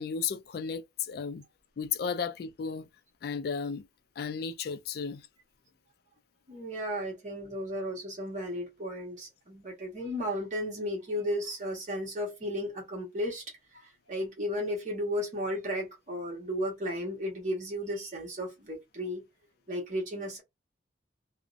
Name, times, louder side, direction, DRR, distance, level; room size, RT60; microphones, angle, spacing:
voice 1, 0.0-1.4 1.8-2.9 3.2-3.9 4.2-5.2, left 6 dB, 55° left, 0.3 m, -34 dB
voice 2, 6.5-13.4 13.7-19.2 19.7-20.4, equal, 40° right, 1.0 m, -34 dB
2.5 x 2.0 x 2.4 m
head